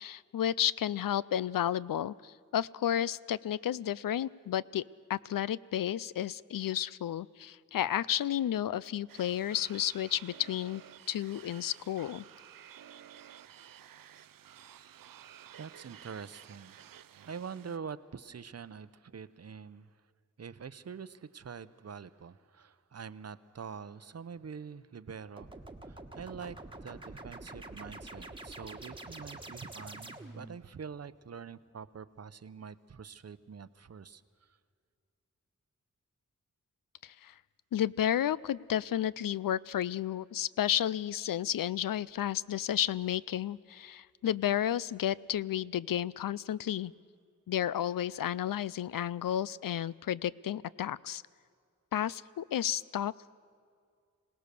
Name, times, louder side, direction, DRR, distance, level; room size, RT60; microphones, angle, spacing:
voice 1, 0.0-4.8 5.1-10.8 11.1-12.2 37.0-37.3 37.7-46.9 47.5-51.2 51.9-53.1, left 11 dB, 90° left, 20 dB, 0.5 m, -32 dB
sound 1, 9.1-17.8, right 10 dB, 90° right, 0.5 m, -53 dB
voice 2, 15.6-16.8 17.3-19.9 20.4-25.5 25.8-34.6, right 6 dB, 50° right, 15 dB, 0.7 m, -45 dB
sound 2, 25.4-30.6, right 2 dB, 15° right, 1.3 m, -46 dB
26.0 x 18.0 x 6.8 m, 2.2 s
wide cardioid pair, 115°, 33 cm